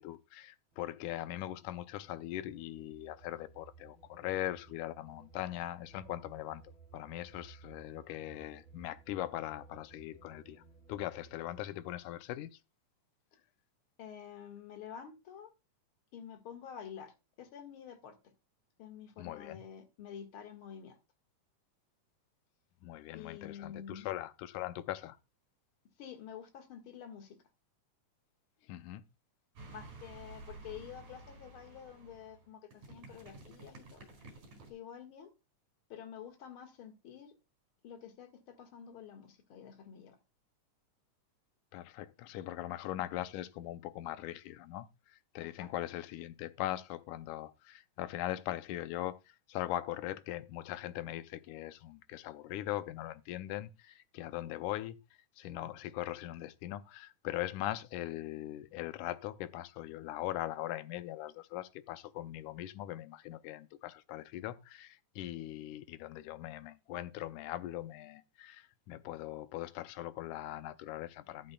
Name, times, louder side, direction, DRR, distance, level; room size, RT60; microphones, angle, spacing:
voice 1, 0.0-10.6 10.9-12.6 19.2-19.6 22.8-25.2 28.7-29.0 41.7-55.0 55.4-71.5, left 14 dB, 80° left, 2.1 m, -40 dB
sound 1, 0.7-11.7, right 5 dB, 55° right, 8.1 m, -59 dB
voice 2, 14.0-15.5 16.1-18.2 18.8-21.0 23.1-24.1 26.0-27.4 29.7-34.1 34.7-35.3 35.9-37.3 37.8-40.2 45.4-45.7, left 8 dB, 45° left, 2.3 m, -49 dB
sound 2, 29.6-34.7, right 2 dB, 70° right, 6.3 m, -52 dB
13.5 x 11.5 x 2.3 m
omnidirectional pair, 3.7 m